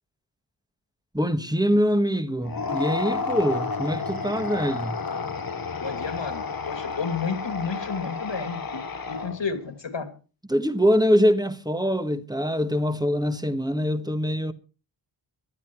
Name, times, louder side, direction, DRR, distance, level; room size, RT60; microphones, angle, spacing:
voice 1, 1.1-5.0 10.5-14.5, equal, 10° right, 1.4 m, -23 dB
sound 1, 2.4-9.6, left 4 dB, 50° left, 1.4 m, -31 dB
voice 2, 5.8-8.8 9.1-10.1, left 5 dB, 75° left, 2.9 m, -31 dB
18.0 x 12.0 x 4.7 m
wide cardioid pair, 80°, 44 cm